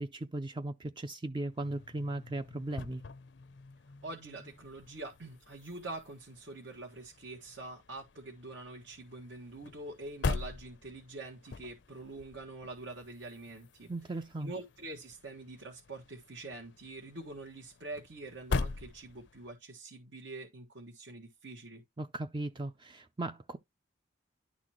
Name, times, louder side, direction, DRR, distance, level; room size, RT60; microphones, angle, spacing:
voice 1, 0.0-3.0 13.9-14.5 22.0-23.6, right 2 dB, 25° right, 0.4 m, -37 dB
sound 1, 1.5-19.6, left 4 dB, 65° left, 0.5 m, -43 dB
voice 2, 4.0-13.9 14.4-21.8, right 2 dB, 80° right, 1.7 m, -45 dB
11.5 x 4.1 x 3.0 m
head